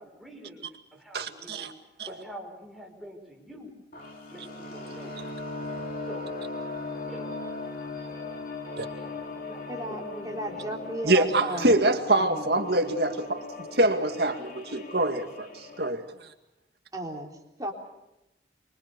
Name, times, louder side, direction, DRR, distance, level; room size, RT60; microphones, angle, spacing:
voice 1, 0.0-1.7 2.1-3.7 4.3-5.3 6.1-6.4 7.1-7.4 8.6-10.8, equal, ahead, 2 dB, 5.2 m, -46 dB
voice 2, 1.1-1.7 2.0-2.1 8.8-8.9 11.0-16.3, right 2 dB, 60° right, 6 dB, 2.1 m, -25 dB
sound 1, 3.9-15.9, left 3 dB, 50° left, 3.2 m, -38 dB
voice 3, 9.7-11.8 12.2-12.5 16.9-17.3 17.6-17.7, right 1 dB, 20° right, 0 dB, 3.7 m, -34 dB
25.0 x 24.0 x 6.9 m, 0.92 s
head